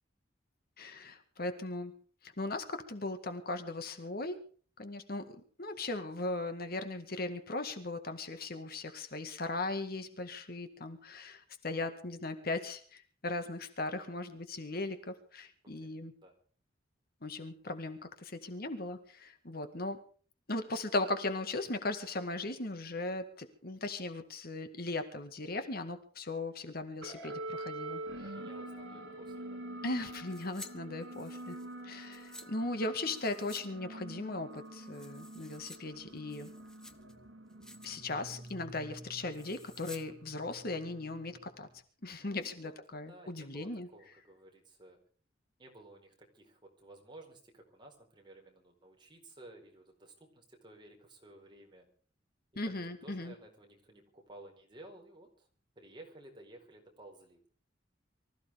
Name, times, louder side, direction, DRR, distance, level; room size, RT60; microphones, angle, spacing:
voice 1, 0.8-1.9 2.2-4.4 4.8-16.1 17.2-20.0 20.5-28.0 29.8-31.6 31.8-36.5 37.8-41.7 42.0-43.9 52.6-53.3, left 2 dB, 55° left, 8 dB, 1.9 m, -38 dB
voice 2, 15.6-16.4 28.2-29.6 42.2-42.7 43.1-45.0 45.6-51.9 52.6-55.5 55.8-57.4, right 1 dB, 25° right, 1 dB, 4.6 m, -55 dB
sound 1, 27.0-41.8, right 1 dB, 75° right, 4.0 m, -46 dB
sound 2, 30.3-30.7 31.0-32.5 33.0-33.7 33.9-34.0 34.5-35.8 36.2-37.1 37.5-38.0 38.3-38.6 39.3-40.0 40.3-40.4, left 1 dB, 5° left, 1.3 m, -52 dB
24.5 x 15.0 x 3.6 m, 0.43 s
head